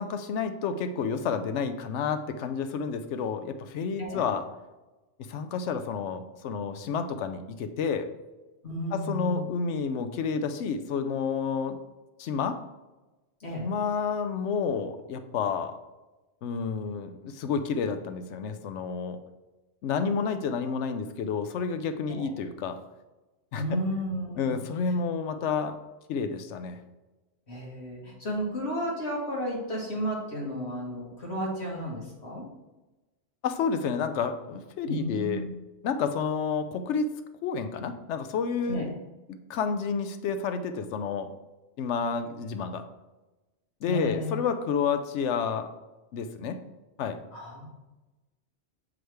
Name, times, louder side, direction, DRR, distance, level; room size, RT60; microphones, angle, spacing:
voice 1, 0.0-4.4 5.3-8.1 8.9-11.8 12.2-12.6 13.6-15.8 16.4-19.2 19.8-22.8 23.5-23.6 24.4-25.8 26.1-26.8 33.4-35.4 35.8-37.1 37.4-38.9 39.3-41.3 41.8-42.9 43.8-45.7 46.1-46.6 47.0-47.2, left 6 dB, 80° left, 9 dB, 0.9 m, -30 dB
voice 2, 8.6-9.5 13.4-13.7 22.1-22.3 23.5-24.6 27.5-32.5 34.8-35.5 38.7-38.9 43.8-44.5 47.3-47.7, equal, 65° left, -3 dB, 2.0 m, -33 dB
6.0 x 4.9 x 3.3 m, 1.1 s
omnidirectional pair, 1.2 m